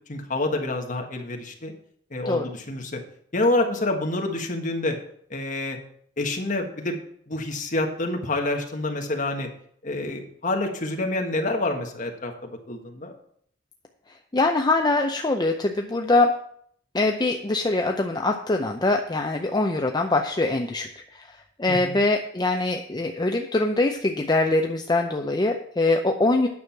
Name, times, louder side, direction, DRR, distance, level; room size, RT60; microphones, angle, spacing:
voice 1, 0.1-1.7 2.1-3.0 3.3-5.0 5.3-5.8 6.2-7.0 7.3-9.5 9.8-13.1 21.7-22.0, left 2 dB, 45° left, 2 dB, 1.5 m, -27 dB
voice 2, 14.3-16.3 16.9-21.3 21.6-26.5, left 2 dB, 20° left, 3 dB, 0.6 m, -23 dB
9.5 x 6.2 x 5.8 m, 0.65 s
head